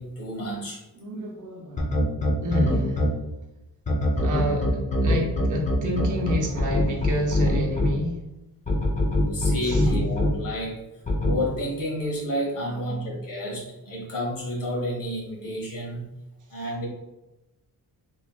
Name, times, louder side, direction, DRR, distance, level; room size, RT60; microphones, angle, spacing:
voice 1, 0.0-0.8 9.3-10.8 11.2-16.1 16.5-16.9, equal, 55° left, -3 dB, 1.3 m, -30 dB
voice 2, 0.9-2.0 2.4-3.1 4.2-8.2 9.6-9.9 12.6-13.1, equal, 50° right, 0 dB, 0.7 m, -30 dB
sound 1, 1.8-3.1 3.9-7.9 8.7-10.3 11.1-11.3, left 1 dB, 20° left, 0.5 m, -22 dB
3.6 x 3.0 x 2.3 m, 0.95 s
wide cardioid pair, 175°, 39 cm